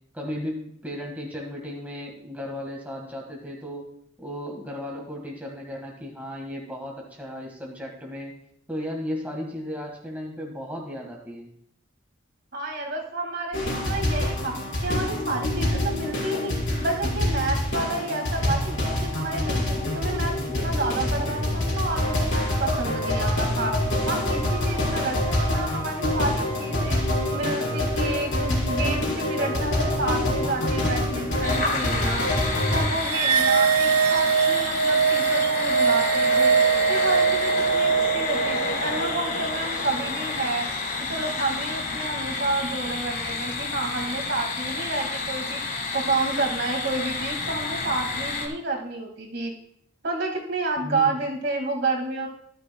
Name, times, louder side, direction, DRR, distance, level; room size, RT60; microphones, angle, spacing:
voice 1, 0.1-3.9 4.2-8.3 8.7-11.5 50.8-51.2, left 1 dB, 10° right, -2 dB, 1.6 m, -35 dB
voice 2, 12.5-14.6 14.8-20.3 20.6-23.8 24.1-27.0 27.3-32.3 32.7-36.6 36.9-40.7 41.1-45.6 45.9-49.5 50.0-52.3, right 2 dB, 55° right, 0 dB, 2.0 m, -30 dB
sound 1, 13.5-32.8, left 1 dB, 60° left, 5.0 m, -26 dB
sound 2, 31.4-48.5, left 3 dB, 40° left, 1.6 m, -30 dB
sound 3, 33.1-39.6, right 6 dB, 85° right, 0.6 m, -22 dB
14.0 x 12.0 x 2.3 m, 0.69 s
head